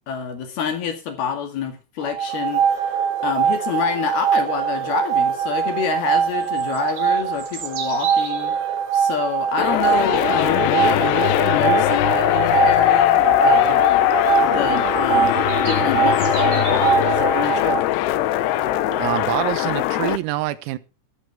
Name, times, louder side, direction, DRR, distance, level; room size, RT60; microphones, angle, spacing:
voice 1, 0.1-3.0 3.2-8.6 8.9-14.1 14.4-15.4 15.7-17.8, left 7 dB, 55° left, 3.5 m, -27 dB
sound 1, 2.0-17.8, right 7 dB, 65° right, 3.4 m, -22 dB
sound 2, 2.3-19.2, right 5 dB, 45° right, 3.7 m, -36 dB
sound 3, 9.6-20.2, left 16 dB, 90° left, 2.3 m, -20 dB
voice 2, 19.0-20.8, right 15 dB, 85° right, 3.8 m, -25 dB
16.0 x 14.0 x 3.5 m
omnidirectional pair, 6.0 m